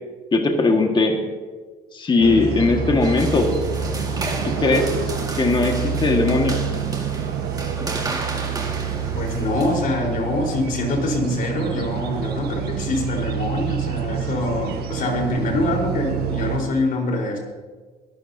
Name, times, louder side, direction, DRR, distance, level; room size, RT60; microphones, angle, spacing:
voice 1, 0.3-1.2 1.9-3.5 4.4-4.9 5.4-6.6, left 3 dB, 30° left, 3 dB, 1.7 m, -19 dB
sound 1, 2.2-16.6, right 7 dB, 70° right, 1.4 m, -27 dB
sound 2, 3.0-9.8, right 3 dB, 20° right, 2.0 m, -33 dB
voice 2, 9.1-17.4, left 2 dB, 55° left, 0 dB, 4.2 m, -24 dB
22.0 x 12.5 x 2.8 m, 1.4 s
cardioid pair, 110°, 17 cm